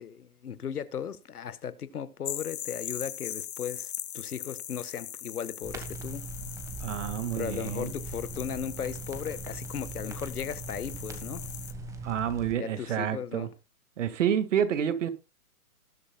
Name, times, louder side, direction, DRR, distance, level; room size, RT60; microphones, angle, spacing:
voice 1, 0.0-6.3 7.3-11.4 12.5-13.5, left 8 dB, 90° left, 1.3 m, -36 dB
sound 1, 2.2-11.7, left 11 dB, 55° left, 1.2 m, -40 dB
sound 2, 5.6-12.5, right 3 dB, 5° right, 1.3 m, -40 dB
voice 2, 6.8-7.9 12.0-13.5 14.0-15.1, right 9 dB, 55° right, 1.9 m, -29 dB
19.0 x 8.8 x 2.3 m
hypercardioid pair, 155°, 44 cm